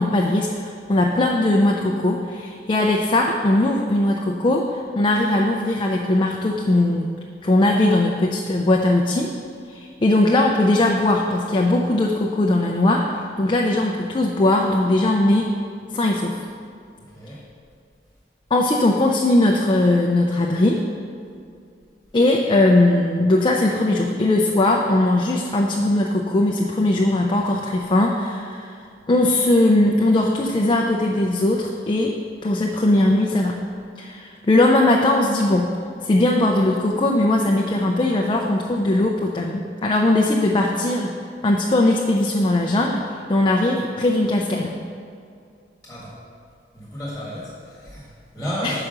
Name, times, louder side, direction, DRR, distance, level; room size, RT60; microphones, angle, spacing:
voice 1, 0.0-7.1 7.4-9.3 9.7-15.5 15.9-16.4 18.5-20.8 22.1-28.7 29.1-33.6 34.0-35.7 36.0-41.1 41.4-43.0 43.3-44.7 48.6-48.8, left 1 dB, 30° left, 0 dB, 0.4 m, -19 dB
voice 2, 17.0-17.4 45.8-46.1 46.7-48.9, equal, 5° left, -7 dB, 1.6 m, -32 dB
5.8 x 4.9 x 6.6 m, 2.4 s
head